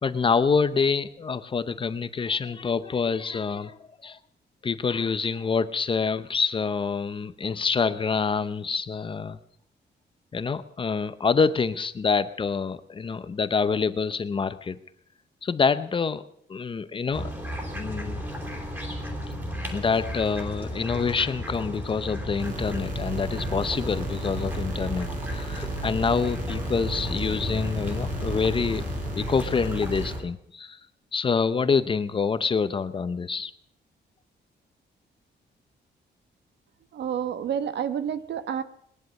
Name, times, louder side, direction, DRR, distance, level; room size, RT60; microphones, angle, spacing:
voice 1, 0.0-3.8 4.0-4.2 4.6-9.4 10.3-14.8 15.4-16.2 16.5-17.3 17.7-18.2 19.7-28.8 29.1-30.8 31.1-33.5, left 5 dB, 30° left, 13 dB, 0.7 m, -26 dB
sound 1, 17.1-30.2, left 1 dB, 10° right, 3.4 m, -34 dB
sound 2, 22.4-30.2, right 2 dB, 50° right, 4.2 m, -34 dB
voice 2, 36.9-38.6, right 8 dB, 70° right, 12 dB, 1.2 m, -29 dB
20.0 x 11.0 x 6.4 m, 0.69 s
wide cardioid pair, 180°, 19 cm